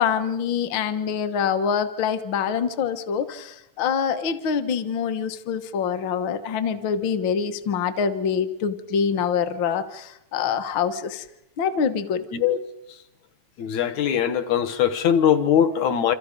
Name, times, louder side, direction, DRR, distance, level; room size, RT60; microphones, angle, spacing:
voice 1, 0.0-11.2 11.6-12.2, left 7 dB, 55° left, 1.5 m, -25 dB
voice 2, 13.6-16.1, left 9 dB, 75° left, 2.5 m, -21 dB
28.5 x 26.5 x 5.2 m
omnidirectional pair, 3.4 m